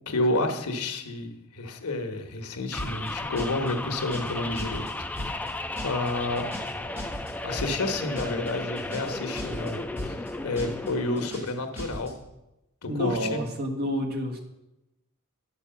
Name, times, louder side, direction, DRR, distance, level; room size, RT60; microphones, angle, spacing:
voice 1, 0.1-4.9 5.8-6.5 7.4-12.1 12.8-13.4, left 2 dB, 80° left, 5 dB, 1.2 m, -30 dB
sound 1, 2.7-11.3, left 2 dB, 5° left, 0.3 m, -35 dB
sound 2, 2.8-3.1 3.4-3.7 4.0-4.3 4.6-4.9 5.2-5.5 5.8-6.1 6.4-6.7 7.0-7.3 7.6-7.9 8.2-8.5 8.8-9.1 9.4-9.7 10.0-10.3 10.6-10.9 11.2-11.5 11.8-12.1, left 1 dB, 10° right, 3.4 m, -37 dB
voice 2, 12.9-14.4, equal, 45° right, 2 dB, 1.5 m, -29 dB
10.0 x 6.8 x 5.8 m, 0.95 s
head